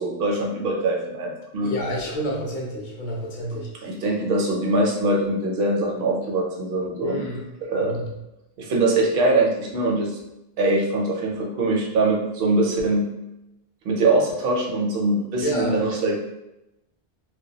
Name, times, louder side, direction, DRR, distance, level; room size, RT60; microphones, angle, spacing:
voice 1, 0.0-1.7 3.5-7.3 7.7-8.0 8.6-10.2 10.6-13.0 13.8-16.2, right 2 dB, 70° right, -1 dB, 0.8 m, -23 dB
voice 2, 1.6-3.7 7.0-7.4 7.8-8.1 15.4-15.8, equal, 55° left, -3 dB, 0.7 m, -29 dB
2.2 x 2.1 x 2.7 m, 0.92 s
omnidirectional pair, 1.0 m